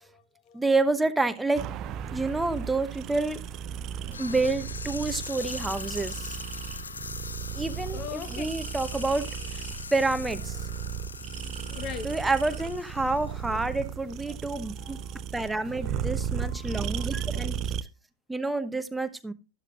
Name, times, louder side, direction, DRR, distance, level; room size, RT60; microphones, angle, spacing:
voice 1, 0.5-1.6 2.1-3.4 4.2-6.4 7.5-9.6 9.9-10.6 12.0-15.0 15.3-17.5 18.3-19.3, right 3 dB, 5° right, 0.9 m, -28 dB
sound 1, 1.6-17.8, right 7 dB, 35° right, 0.6 m, -35 dB
sound 2, 4.1-13.9, left 5 dB, 75° left, 0.6 m, -41 dB
voice 2, 7.8-8.5 9.0-9.5 10.6-10.7 11.2-12.6 14.0-14.4 14.6-17.3, left 8 dB, 35° left, 1.2 m, -44 dB
12.0 x 11.5 x 2.5 m
figure-of-eight pair, 90°, 0 cm